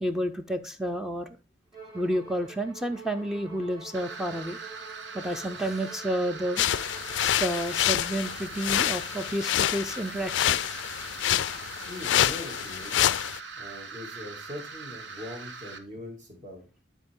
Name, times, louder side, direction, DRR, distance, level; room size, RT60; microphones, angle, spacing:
voice 1, 0.0-1.3 1.9-4.6 5.1-6.7 7.2-10.6, right 1 dB, 5° right, 7 dB, 0.4 m, -30 dB
Bowed string instrument, 1.7-7.5, right 5 dB, 25° right, 2.9 m, -47 dB
sound 1, 3.9-15.8, right 4 dB, 70° right, 1.0 m, -41 dB
sound 2, 6.6-13.4, left 12 dB, 75° left, 0.3 m, -27 dB
voice 2, 11.6-13.0 13.5-16.6, left 1 dB, 40° right, 2 dB, 2.4 m, -41 dB
12.0 x 4.6 x 3.6 m, 0.31 s
head